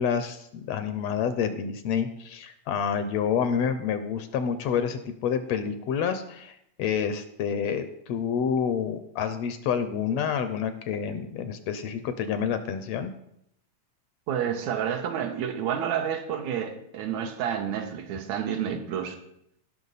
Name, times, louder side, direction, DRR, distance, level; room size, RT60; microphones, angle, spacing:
voice 1, 0.0-13.1, left 7 dB, 75° left, 10 dB, 1.7 m, -28 dB
voice 2, 14.3-19.2, right 8 dB, 75° right, 6 dB, 2.2 m, -29 dB
17.5 x 5.9 x 4.0 m, 0.74 s
omnidirectional pair, 3.3 m